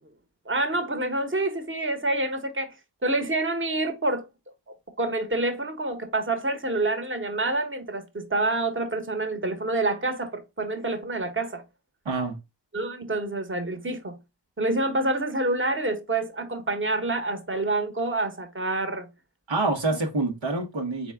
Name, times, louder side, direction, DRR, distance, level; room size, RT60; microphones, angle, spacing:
voice 1, 0.5-2.8 3.0-4.3 5.0-11.6 12.7-14.2 14.6-19.1, right 2 dB, 25° right, 1.1 m, -27 dB
voice 2, 12.0-12.4 19.5-21.1, right 3 dB, 90° right, 1.4 m, -26 dB
4.2 x 3.5 x 3.5 m
cardioid pair, 40°, 44 cm